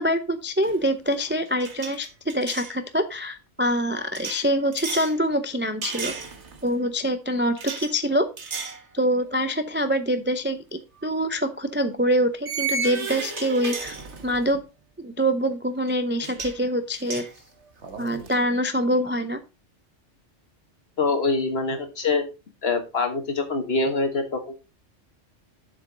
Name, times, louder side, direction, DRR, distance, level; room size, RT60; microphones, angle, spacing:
voice 1, 0.0-6.1 6.6-8.3 8.9-14.0 14.2-14.6 15.0-17.2 18.0-19.4, equal, 15° right, 9 dB, 0.4 m, -25 dB
sound 1, 0.6-0.9 1.1-2.7 4.1-5.2 5.8-6.7 7.6-7.9 8.4-8.8 9.3-9.4 11.0-11.1 12.5-14.5 15.9-16.0 16.2-16.6 16.9-18.4, right 4 dB, 65° right, 1.6 m, -33 dB
voice 2, 21.0-22.2 22.6-24.5, left 3 dB, 55° left, 7 dB, 1.6 m, -24 dB
7.7 x 6.9 x 3.8 m, 0.28 s
omnidirectional pair, 1.3 m